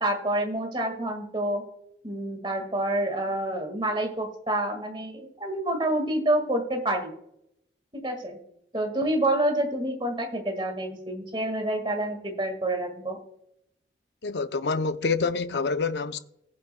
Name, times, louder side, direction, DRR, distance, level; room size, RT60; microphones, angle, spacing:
voice 1, 0.0-1.6 2.0-7.1 7.9-8.4 8.7-13.2, right 1 dB, 25° right, 1.7 m, -28 dB
voice 2, 14.2-16.2, left 4 dB, 65° left, 0.6 m, -27 dB
18.0 x 7.4 x 2.2 m
head